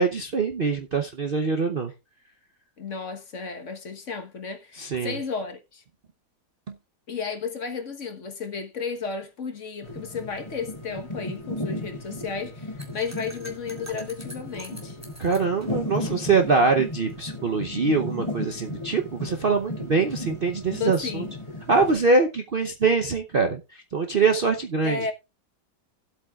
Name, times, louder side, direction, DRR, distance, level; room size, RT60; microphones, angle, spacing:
voice 1, 0.0-1.9 4.8-5.1 6.7-6.8 15.2-21.2 21.7-25.0, right 4 dB, 45° right, 0.7 m, -23 dB
voice 2, 2.8-5.8 7.1-15.0 20.8-21.3 24.8-25.1, left 5 dB, 50° left, 1.5 m, -33 dB
sound 1, 9.8-21.9, left 1 dB, 15° left, 3.1 m, -35 dB
sound 2, 12.8-17.2, equal, 10° right, 2.2 m, -46 dB
16.5 x 8.1 x 2.4 m
omnidirectional pair, 1.8 m